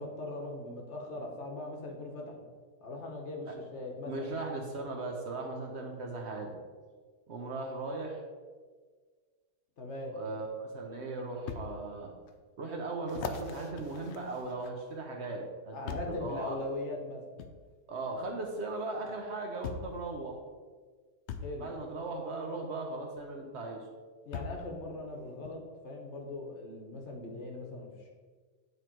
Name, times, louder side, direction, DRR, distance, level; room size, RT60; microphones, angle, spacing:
voice 1, 0.0-2.4 2.8-4.4 9.8-10.1 15.7-17.2 21.4-21.7 24.3-28.1, left 2 dB, 50° left, 1 dB, 1.1 m, -40 dB
voice 2, 4.1-6.6 7.3-8.2 10.1-12.1 12.6-16.6 17.9-20.4 21.6-23.8, right 2 dB, 50° right, 1 dB, 0.9 m, -38 dB
sound 1, 11.5-11.7 12.3-12.4 13.1-15.0 15.9-16.2 17.4-17.5 18.8-18.9 19.6-20.0 21.3-21.5 23.2-23.3 24.3-24.7 25.4-25.6, left 5 dB, 80° left, 0.6 m, -40 dB
9.3 x 3.1 x 4.4 m, 1.5 s
omnidirectional pair, 1.7 m